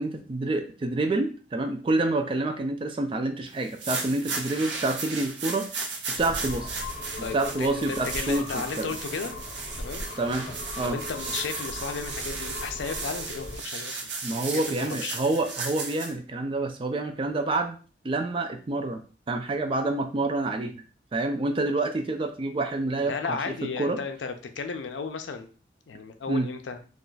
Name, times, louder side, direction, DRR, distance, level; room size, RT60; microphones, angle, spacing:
voice 1, 0.0-5.7 6.1-6.7 7.2-8.9 10.2-10.5 10.8-11.0 14.2-17.8 18.0-20.8 21.1-24.0 26.3-26.5, right 2 dB, 30° right, 6 dB, 0.4 m, -28 dB
sound 1, 3.6-16.1, right 4 dB, 80° right, 0.7 m, -35 dB
sound 2, 6.2-13.6, left 2 dB, 50° left, 0.8 m, -39 dB
voice 2, 7.2-9.3 9.8-10.0 10.8-14.4 14.8-15.2 23.0-25.5 25.9-26.8, left 5 dB, 85° left, 7 dB, 0.5 m, -34 dB
2.4 x 2.3 x 3.8 m, 0.37 s
head